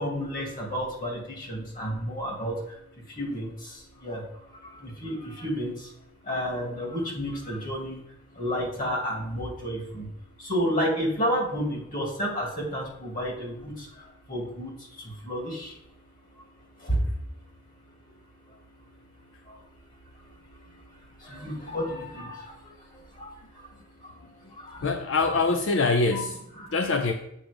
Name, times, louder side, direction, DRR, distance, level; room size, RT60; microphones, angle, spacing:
voice 1, 0.0-2.8 3.1-4.2 4.5-5.9 6.2-8.0 8.3-10.1 10.4-15.8 16.4-16.5 16.8-17.0 18.5-18.6 19.5-19.6 21.2-23.7 24.0-24.2 24.5-24.9 26.1-26.3 26.6-26.7, equal, 45° left, 0 dB, 2.4 m, -31 dB
voice 2, 24.8-26.4 26.7-27.1, left 3 dB, 85° left, 6 dB, 0.6 m, -24 dB
7.4 x 5.1 x 5.1 m, 0.78 s
head